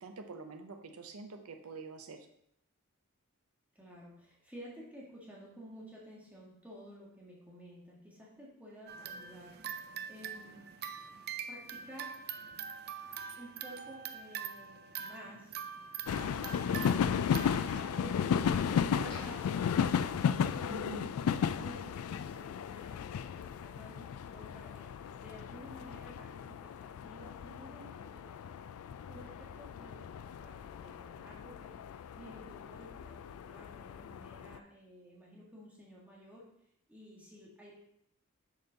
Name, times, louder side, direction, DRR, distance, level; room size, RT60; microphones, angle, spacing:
voice 1, 0.0-2.3 20.7-21.1, right 3 dB, 90° right, 5 dB, 0.7 m, -46 dB
voice 2, 3.7-10.6 11.5-12.2 13.4-15.5 17.4-23.0 23.3-28.7 29.1-36.5 36.9-37.8, equal, 5° right, -5 dB, 1.6 m, -52 dB
sound 1, 8.9-18.9, right 7 dB, 50° right, 0.5 m, -44 dB
sound 2, 16.1-34.6, left 7 dB, 75° left, 0.3 m, -35 dB
sound 3, 19.1-21.0 21.4-21.5 22.0-22.2, equal, 25° left, 1.9 m, -56 dB
6.5 x 5.3 x 3.9 m, 0.72 s
head